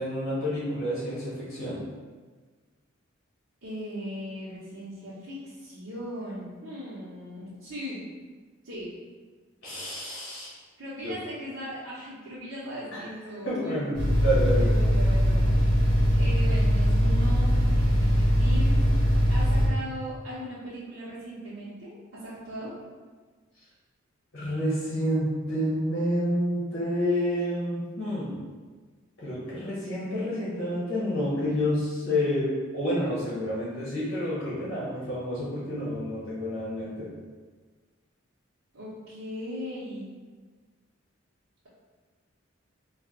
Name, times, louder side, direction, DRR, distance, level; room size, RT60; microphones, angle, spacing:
voice 1, 0.0-1.8 9.6-10.5 11.0-11.1 12.9-13.1 13.4-14.7 24.3-28.4 29.2-37.1, equal, 55° left, -8 dB, 1.2 m, -29 dB
voice 2, 3.6-8.0 8.6-8.9 10.8-13.9 14.5-15.5 16.1-18.8 19.3-22.8 38.7-40.1, equal, 80° right, -10 dB, 1.0 m, -38 dB
sound 1, 13.9-19.7, equal, 55° right, 1.3 m, -21 dB
3.4 x 2.6 x 3.8 m, 1.4 s
head